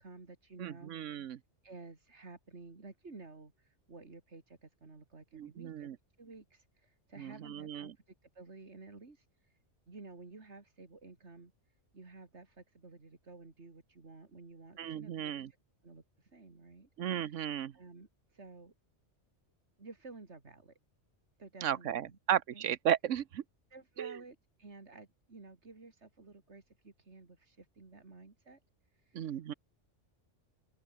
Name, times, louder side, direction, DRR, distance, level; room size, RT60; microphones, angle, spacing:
voice 1, 0.0-1.2 1.6-5.9 6.2-9.6 9.9-15.6 15.8-17.3 17.7-18.7 19.8-20.7 21.4-22.2 22.5-22.7 23.7-28.6 28.9-29.6, right 3 dB, 65° right, 3.2 m, -53 dB
voice 2, 0.6-1.4 5.3-6.0 7.2-7.9 14.8-15.5 17.0-17.7 21.6-23.4 24.0-24.2 29.1-29.5, right 10 dB, 90° right, 1.2 m, -34 dB
open air
omnidirectional pair, 1.2 m